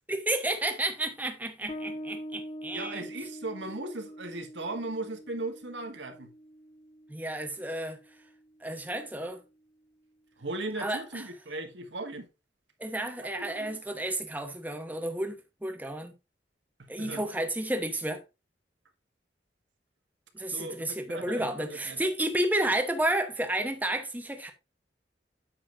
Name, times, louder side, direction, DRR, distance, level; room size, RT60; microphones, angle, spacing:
voice 1, 0.1-3.0 7.1-8.0 8.6-9.4 10.8-11.2 12.8-16.1 16.9-18.2 20.3-24.5, right 1 dB, 10° right, 1.0 m, -31 dB
Bass guitar, 1.7-8.8, equal, 35° left, 1.8 m, -44 dB
voice 2, 2.7-6.3 10.4-12.3 13.2-13.8 16.8-17.2 20.5-22.1, right 2 dB, 75° right, 1.6 m, -38 dB
8.8 x 7.3 x 2.6 m
head